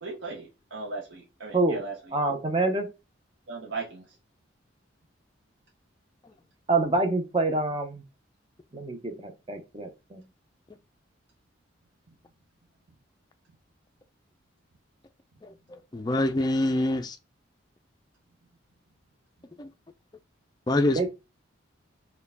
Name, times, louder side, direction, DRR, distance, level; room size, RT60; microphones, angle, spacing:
voice 1, 0.0-2.0 3.5-4.0, right 3 dB, 65° right, 0.8 m, -37 dB
voice 2, 2.1-2.9 6.7-8.0 8.7-10.2 20.9-21.1, right 2 dB, 25° right, 0.6 m, -26 dB
voice 3, 15.4-17.2 19.6-19.7 20.7-21.1, left 1 dB, 20° left, 0.3 m, -26 dB
4.5 x 2.2 x 3.4 m
head